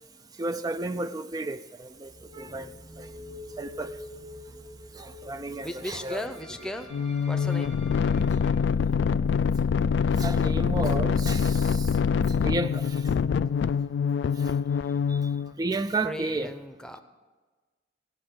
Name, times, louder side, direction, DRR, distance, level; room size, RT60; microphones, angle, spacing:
voice 1, 0.4-2.7 3.0-3.1 3.6-3.9 5.0-6.2 6.6-6.7 10.2-11.9 12.4-13.1 14.4-14.5 15.1-15.2 15.6-16.5, right 2 dB, 20° right, 0.3 m, -32 dB
sound 1, 1.9-13.4, left 2 dB, 60° right, 4.6 m, -49 dB
sound 2, 5.4-8.7, equal, 80° right, 1.7 m, -50 dB
voice 2, 5.6-6.9 7.3-7.7 16.0-17.0, left 1 dB, 5° left, 0.7 m, -36 dB
sound 3, 6.9-15.5, left 6 dB, 75° left, 0.3 m, -25 dB
16.5 x 6.1 x 7.8 m
head